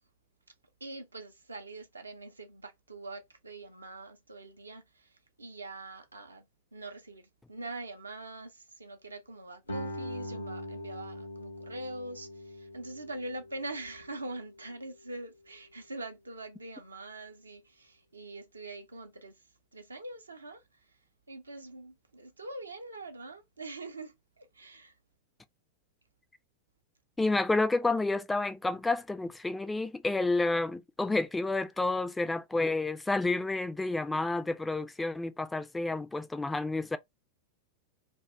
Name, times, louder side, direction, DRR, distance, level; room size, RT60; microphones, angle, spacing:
voice 1, 0.8-6.5 6.7-19.4 19.7-20.6 21.3-24.9, right 2 dB, 80° right, 0.5 m, -43 dB
Guitar, 9.7-15.0, left 1 dB, 80° left, 0.8 m, -42 dB
voice 2, 27.2-37.0, left 2 dB, 10° left, 0.3 m, -30 dB
2.2 x 2.2 x 3.1 m
figure-of-eight pair, 90°, 0 cm